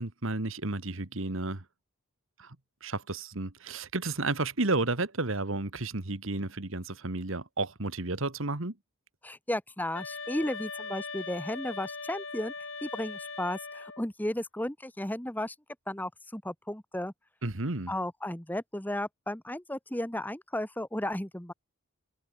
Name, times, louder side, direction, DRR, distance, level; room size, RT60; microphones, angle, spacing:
voice 1, 0.0-1.6 2.4-2.6 2.8-8.8 17.4-17.9, right 2 dB, 65° right, 1.8 m, -32 dB
voice 2, 9.2-12.5 12.8-15.5 15.9-17.1 17.9-21.5, left 1 dB, 10° left, 1.2 m, -34 dB
sound 1, 9.9-14.1, left 4 dB, 60° left, 6.7 m, -40 dB
head